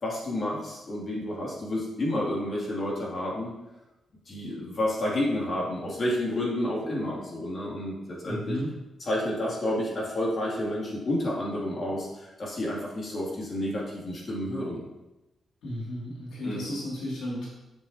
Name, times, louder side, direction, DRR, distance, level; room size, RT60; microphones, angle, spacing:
voice 1, 0.0-3.5 4.3-8.6 9.1-14.8 16.4-16.6, left 1 dB, 50° left, -4 dB, 2.6 m, -30 dB
voice 2, 8.2-8.7 15.6-17.5, left 1 dB, 85° left, -7 dB, 2.6 m, -33 dB
7.2 x 7.0 x 2.9 m, 0.99 s
cardioid pair, 85°, 0 cm